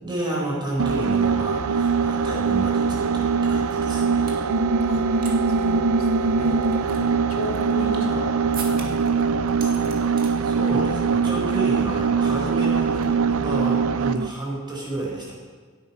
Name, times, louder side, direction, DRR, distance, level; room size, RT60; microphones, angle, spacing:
voice 1, 0.0-4.3 10.4-15.4, right 2 dB, 20° right, -3 dB, 4.2 m, -30 dB
sound 1, 0.8-14.3, right 5 dB, 85° right, 0.5 m, -22 dB
sound 2, 1.1-1.2 1.5-4.5 4.9-5.4 5.6-5.7 6.2-8.2 8.5-9.1 9.5-10.3 10.7-11.0 11.2-11.5 11.8-12.0 13.0-13.8, right 4 dB, 45° right, 2.2 m, -41 dB
voice 2, 4.9-10.0 12.8-13.0, left 1 dB, 85° left, 0 dB, 2.4 m, -35 dB
17.0 x 9.0 x 5.6 m, 1.5 s
head